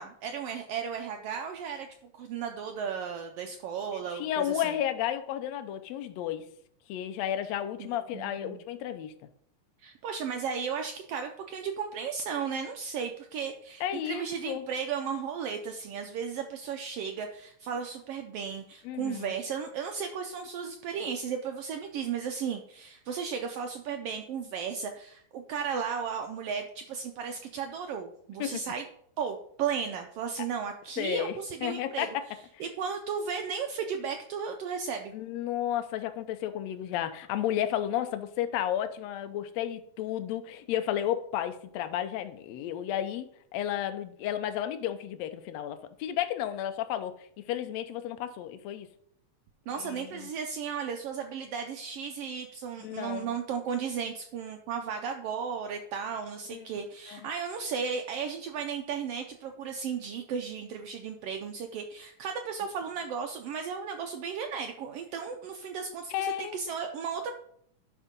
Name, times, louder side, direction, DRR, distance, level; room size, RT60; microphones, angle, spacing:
voice 1, 0.0-1.9 2.1-4.7 7.8-7.9 8.1-8.6 9.8-28.8 29.2-32.1 32.6-35.1 49.7-67.3, right 6 dB, 85° right, 4 dB, 1.3 m, -35 dB
voice 2, 4.1-6.5 6.9-9.1 13.8-14.6 18.8-19.3 28.4-28.6 31.0-32.2 32.6-32.7 35.1-43.3 43.5-48.9 49.7-50.3 52.8-53.3 56.5-56.7 57.1-57.2 66.1-66.6, left 11 dB, 75° left, 9 dB, 1.7 m, -32 dB
11.0 x 3.7 x 5.1 m, 0.67 s
omnidirectional pair, 3.4 m